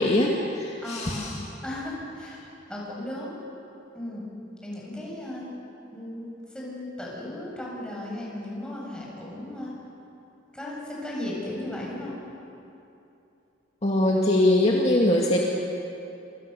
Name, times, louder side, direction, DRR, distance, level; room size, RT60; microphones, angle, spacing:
voice 1, 0.0-1.4 13.8-15.4, left 1 dB, 35° left, -2 dB, 2.1 m, -22 dB
voice 2, 0.8-1.4 1.6-2.4 2.7-3.3 3.9-4.2 4.6-5.5 5.9-9.7 10.5-12.1, left 1 dB, 5° left, -5 dB, 8.0 m, -35 dB
26.5 x 26.5 x 7.0 m, 2.8 s
head